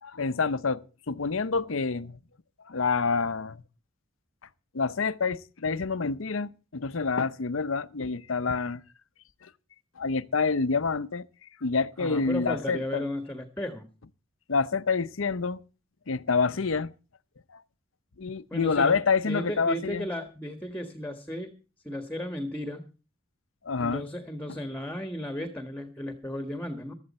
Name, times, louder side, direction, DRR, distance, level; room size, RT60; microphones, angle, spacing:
voice 1, 0.0-2.2 2.7-3.6 4.7-8.8 9.4-9.5 10.0-11.3 11.6-13.0 14.5-15.6 16.1-16.9 17.5-17.6 18.2-20.1 23.6-24.0, left 4 dB, 70° left, 0.8 m, -27 dB
voice 2, 12.0-13.9 18.5-19.0 19.2-21.5 21.8-22.8 23.8-26.9, left 1 dB, 10° left, 1.5 m, -34 dB
15.5 x 12.5 x 4.2 m
head